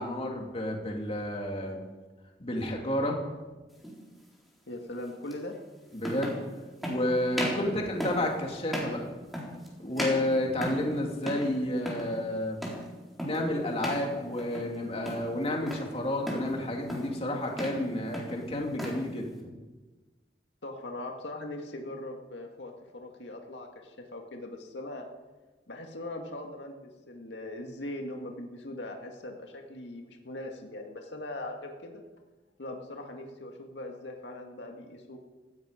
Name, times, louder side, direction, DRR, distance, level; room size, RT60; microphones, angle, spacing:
voice 1, 0.0-1.8 2.4-3.2 5.9-6.4 6.8-9.1 9.8-12.6 13.2-19.3, left 1 dB, 35° left, 1 dB, 2.6 m, -31 dB
sound 1, 3.8-4.0 5.3-5.4 6.0-6.4 6.8-7.0 7.3-7.7 8.0-8.3 8.7-9.0 9.3-9.7 10.0-10.9 11.2-11.5 11.8-12.1 12.6-12.9 13.2-13.5 13.8-14.1 14.4-14.8 15.0-15.9 16.3-16.5 16.9-17.2 17.5-17.8 18.1-19.0, equal, ahead, 4.0 m, -35 dB
voice 2, 4.7-5.5 20.6-25.0 25.7-32.0 32.6-35.2, left 1 dB, 85° left, 2 dB, 2.0 m, -40 dB
17.0 x 16.0 x 5.1 m, 1.2 s
head